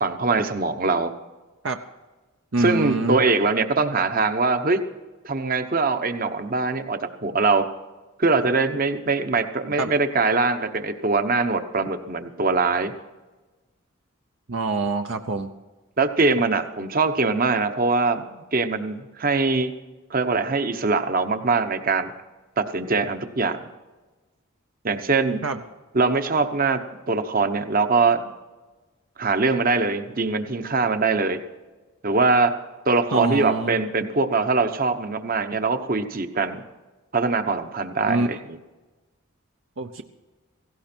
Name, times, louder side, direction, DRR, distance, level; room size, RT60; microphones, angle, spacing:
voice 1, 0.0-1.1 2.6-4.8 5.2-7.7 8.2-12.9 16.0-19.7 20.1-22.1 22.6-23.6 24.8-25.4 25.9-28.3 29.2-31.4 32.0-32.5 32.8-36.6 37.1-38.6, right 3 dB, 45° right, 9 dB, 1.0 m, -22 dB
voice 2, 2.5-3.2 9.8-9.9 14.5-15.5 25.4-25.6 33.1-33.7 38.0-38.4 39.8-40.0, right 3 dB, 65° right, 6 dB, 0.8 m, -25 dB
17.0 x 16.5 x 4.5 m, 1.2 s
head